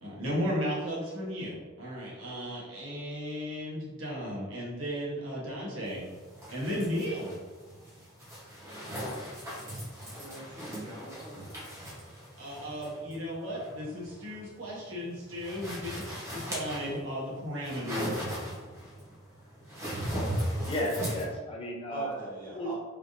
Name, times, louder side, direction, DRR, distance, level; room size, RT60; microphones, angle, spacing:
voice 1, 0.0-6.0 6.5-7.4 12.4-18.1, equal, 70° right, -5 dB, 1.0 m, -35 dB
sound 1, 5.8-21.2, equal, 15° right, 0.8 m, -38 dB
voice 2, 10.1-11.6 21.9-22.7, right 1 dB, 45° right, -6 dB, 1.1 m, -43 dB
voice 3, 20.7-22.3 22.5-22.7, equal, 25° left, -1 dB, 0.4 m, -33 dB
3.3 x 2.5 x 2.5 m, 1.4 s
head